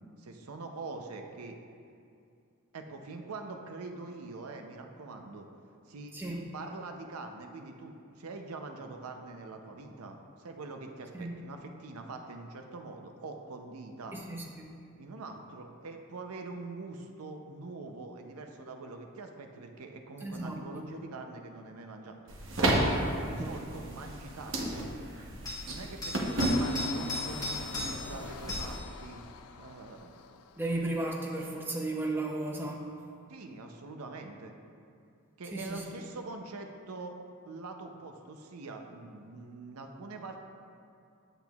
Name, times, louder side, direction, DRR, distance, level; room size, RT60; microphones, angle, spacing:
voice 1, 0.0-1.6 2.7-5.5 5.8-6.2 6.5-14.2 15.0-22.2 22.7-24.9 25.7-29.3 29.6-30.2 33.3-34.5 35.4-37.2 37.4-40.4, right 3 dB, 90° right, 4 dB, 0.6 m, -44 dB
voice 2, 6.1-6.4 11.1-11.4 14.1-14.7 20.2-20.9 23.3-23.6 30.6-32.9 35.5-35.8, right 2 dB, 10° right, -1 dB, 0.6 m, -35 dB
sound 1, 22.3-28.8, right 1 dB, 65° right, 0.9 m, -32 dB
sound 2, 22.6-22.8 25.5-25.6 26.0-28.1 28.5-28.8 31.3-31.4, left 2 dB, 15° left, 1.6 m, -37 dB
Engine, 26.4-31.0 31.4-31.8, left 6 dB, 85° left, 0.4 m, -45 dB
8.7 x 7.8 x 2.3 m, 2.4 s
head